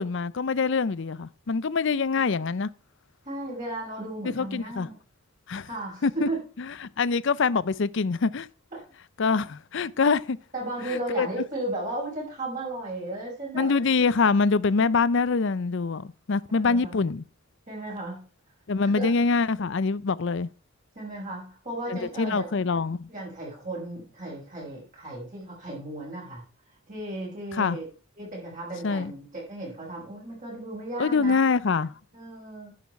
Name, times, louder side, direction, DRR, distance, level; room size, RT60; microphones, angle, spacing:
voice 1, 0.0-2.7 4.2-4.9 5.5-5.7 6.0-6.3 6.6-8.5 9.2-10.4 10.9-11.3 13.5-17.2 18.7-20.5 21.9-23.1 27.5-27.8 28.8-29.1 31.0-31.9, left 4 dB, 60° left, 0.5 m, -25 dB
voice 2, 3.3-4.9 5.6-6.4 10.5-13.8 16.5-17.0 17.7-18.2 18.8-19.1 21.0-22.5 23.1-26.4 26.9-27.9 28.2-31.5 32.1-32.7, right 1 dB, 35° right, 5.5 m, -35 dB
10.5 x 7.1 x 4.7 m
head